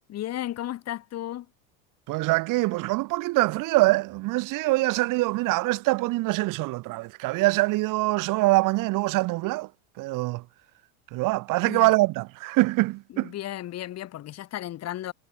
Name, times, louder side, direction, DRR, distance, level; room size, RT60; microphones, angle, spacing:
voice 1, 0.1-1.5 11.6-11.9 13.1-15.1, left 13 dB, 40° left, 3.4 m, -34 dB
voice 2, 2.1-9.7 10.0-10.4 11.1-13.3, right 21 dB, 50° right, 2.3 m, -24 dB
supercardioid pair, 130°, 39 cm